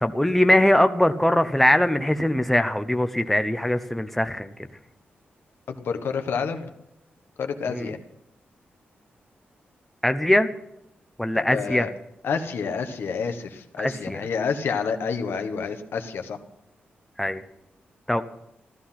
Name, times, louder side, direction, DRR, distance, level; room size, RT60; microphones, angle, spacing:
voice 1, 0.0-4.7 7.7-7.9 10.0-10.5 11.2-11.9 13.8-14.2 17.2-17.4 18.1-18.2, left 1 dB, 5° left, 9 dB, 0.7 m, -21 dB
voice 2, 5.7-6.7 7.4-8.0 11.3-11.9 12.2-16.4, left 5 dB, 80° left, 7 dB, 1.5 m, -29 dB
14.5 x 13.5 x 5.8 m, 0.83 s
wide cardioid pair, 135°, 4 cm